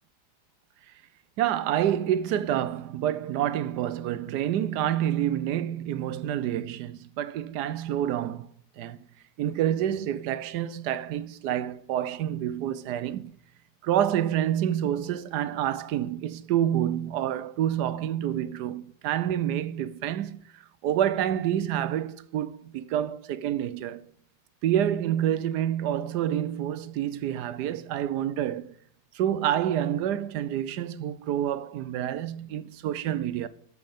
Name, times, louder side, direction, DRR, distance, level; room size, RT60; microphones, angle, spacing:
voice 1, 1.4-8.5 8.8-9.0 9.4-13.4 13.8-24.0 24.6-28.7 29.1-33.5, right 11 dB, 80° right, 1.2 m, -28 dB
13.0 x 6.4 x 5.2 m
omnidirectional pair, 1.8 m